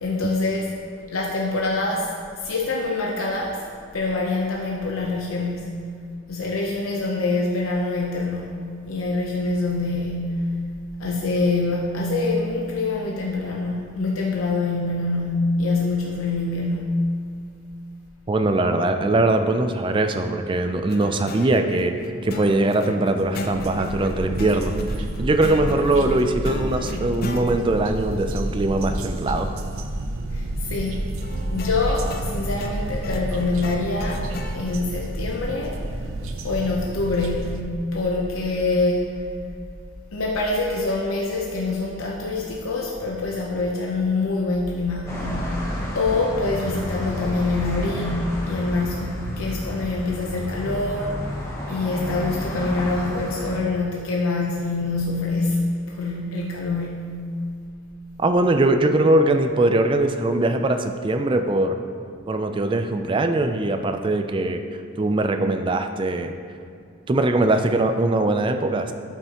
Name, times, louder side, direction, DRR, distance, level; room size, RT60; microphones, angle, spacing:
voice 1, 0.0-0.7 1.1-3.6 3.9-5.9 6.3-10.5 11.0-17.1 30.3-31.1 31.5-35.8 36.4-39.3 40.1-45.5 45.9-51.2 51.7-57.3, left 3 dB, 90° left, -2 dB, 0.7 m, -25 dB
voice 2, 18.3-22.0 22.2-24.7 25.2-29.5 58.2-61.8 62.3-64.6 65.0-66.3 67.1-68.9, right 2 dB, 25° right, 7 dB, 0.3 m, -21 dB
sound 1, 20.9-27.5 31.2-34.6, left 2 dB, 45° left, 0.5 m, -35 dB
sound 2, 23.1-37.6, right 1 dB, 85° right, 0.6 m, -30 dB
sound 3, 45.1-53.6, equal, 15° left, 1.1 m, -30 dB
11.5 x 5.6 x 2.9 m, 2.4 s
head